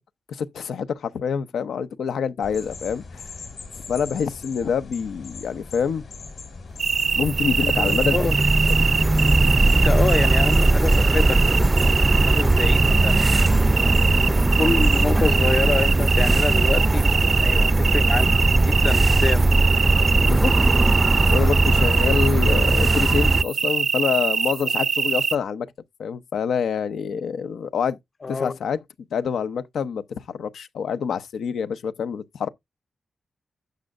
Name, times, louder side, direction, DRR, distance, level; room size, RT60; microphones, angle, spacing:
voice 1, 0.3-3.2 3.9-6.0 7.1-8.4 8.7-8.9 20.2-20.5 21.3-25.7 26.0-28.0 28.3-28.8 29.1-32.5, left 6 dB, 90° left, 0.7 m, -26 dB
sound 1, 2.4-15.2, left 4 dB, 70° left, 3.7 m, -41 dB
sound 2, 6.8-23.4, right 2 dB, 20° right, 0.4 m, -19 dB
sound 3, 6.8-25.4, right 6 dB, 70° right, 0.6 m, -24 dB
voice 2, 7.7-8.4 9.7-13.2 14.3-18.3 18.6-19.5 28.2-28.6, left 4 dB, 45° left, 0.6 m, -27 dB
11.5 x 7.8 x 2.4 m
cardioid pair, 75°, 0 cm